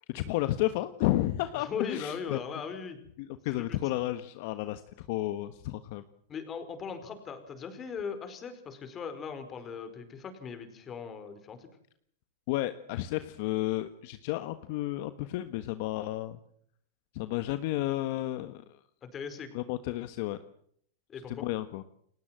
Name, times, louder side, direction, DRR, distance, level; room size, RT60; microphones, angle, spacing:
voice 1, 0.1-2.4 3.2-6.0 12.5-16.4 17.1-18.8 19.5-20.4 21.3-21.8, left 16 dB, 55° left, 11 dB, 1.3 m, -32 dB
voice 2, 1.5-3.0 3.6-3.8 6.3-11.7 19.0-19.5 21.1-21.5, left 6 dB, 25° left, 9 dB, 4.8 m, -39 dB
30.0 x 19.0 x 7.7 m, 0.66 s
supercardioid pair, 145°, 0 cm